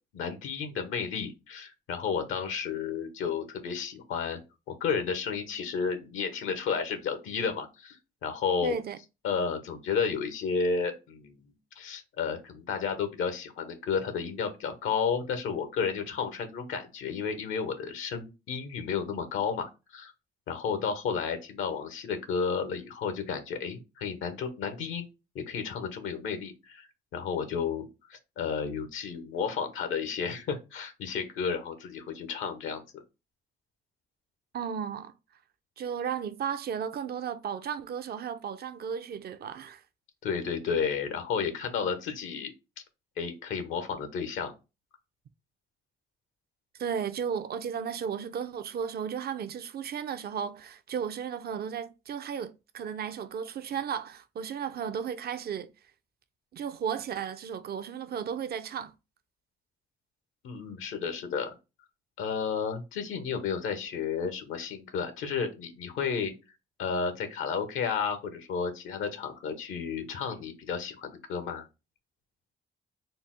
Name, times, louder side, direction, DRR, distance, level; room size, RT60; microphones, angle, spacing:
voice 1, 0.1-4.4 4.7-8.7 9.2-20.1 20.5-25.1 25.3-26.9 27.1-32.8 40.2-42.5 43.2-44.5 60.4-61.5 62.2-66.3 66.8-71.7, left 6 dB, 85° left, 0.8 m, -32 dB
voice 2, 8.6-9.0 34.5-35.1 35.8-39.8 46.8-55.7 56.5-58.9, right 7 dB, 55° right, 0.5 m, -34 dB
4.0 x 2.0 x 3.6 m
cardioid pair, 70°, 20 cm